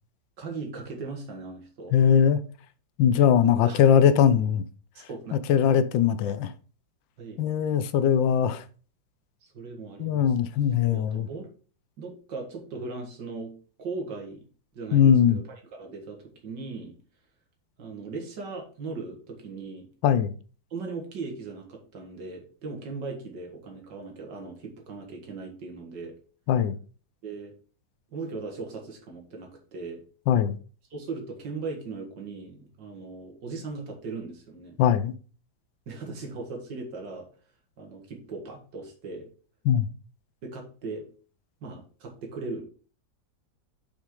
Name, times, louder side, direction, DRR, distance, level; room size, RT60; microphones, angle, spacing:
voice 1, 0.4-2.0 3.5-3.8 5.0-5.6 7.2-7.5 9.4-10.4 10.9-11.5 12.0-13.5 13.8-14.4 14.7-17.0 17.8-19.9 20.7-26.1 27.2-27.5 28.1-30.0 30.9-34.8 35.9-37.3 37.8-39.3 40.4-41.1 41.6-42.6, right 3 dB, 65° right, 2.2 m, -38 dB
voice 2, 1.9-2.4 3.0-4.6 5.5-6.5 7.4-8.6 10.0-11.3 14.9-15.4 20.0-20.3 26.5-26.7 30.3-30.6 34.8-35.1 39.7-39.9, left 8 dB, 80° left, 1.3 m, -20 dB
6.5 x 5.9 x 3.8 m
omnidirectional pair, 2.1 m